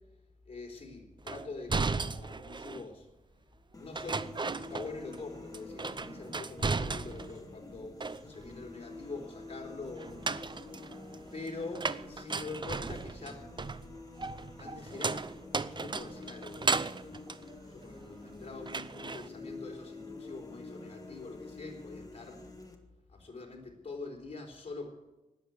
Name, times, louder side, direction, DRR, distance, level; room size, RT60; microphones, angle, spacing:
voice 1, 0.5-3.1 3.8-4.3 4.5-10.2 11.3-13.5 14.6-15.3 15.7-16.8 17.7-22.4 23.1-24.9, left 3 dB, 45° left, 0 dB, 4.1 m, -44 dB
sound 1, 1.3-2.9 3.9-5.2 5.5-7.4 7.7-8.6 10.0-18.3 18.7-19.3, right 4 dB, 35° right, 0.6 m, -35 dB
sound 2, 3.7-22.8, left 3 dB, 25° left, 1.8 m, -48 dB
19.5 x 7.9 x 8.5 m, 1.0 s
wide cardioid pair, 120°, 14 cm